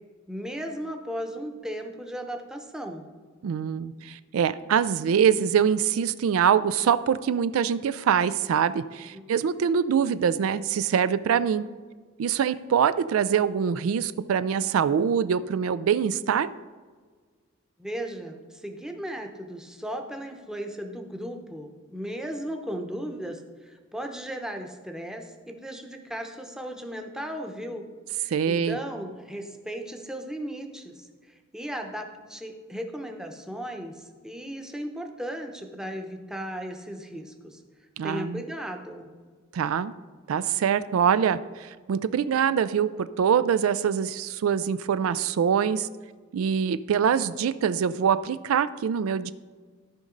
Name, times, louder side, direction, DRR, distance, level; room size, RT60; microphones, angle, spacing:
voice 1, 0.3-3.0 9.1-9.2 17.8-27.8 28.2-37.6 38.0-39.1, equal, 5° right, 3 dB, 0.8 m, -36 dB
voice 2, 3.4-11.7 12.2-16.5 28.3-28.8 38.0-38.4 39.5-39.9 40.3-45.9 46.3-49.3, right 7 dB, 90° right, 15 dB, 0.3 m, -24 dB
13.5 x 5.3 x 3.8 m, 1.5 s
head